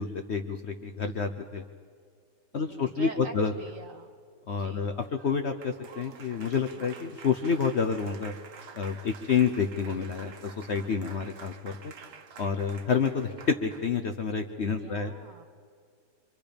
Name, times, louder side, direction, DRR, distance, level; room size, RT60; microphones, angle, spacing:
voice 1, 0.0-1.6 2.5-3.5 4.5-8.3 8.7-11.9 12.4-15.1, left 6 dB, 50° left, 6 dB, 0.9 m, -29 dB
voice 2, 2.5-4.1 4.6-4.9 14.8-15.5, right 4 dB, 55° right, 6 dB, 1.8 m, -44 dB
Applause, 4.8-14.0, right 5 dB, 80° right, 1.7 m, -49 dB
26.0 x 25.5 x 5.2 m, 2.1 s
omnidirectional pair, 1.8 m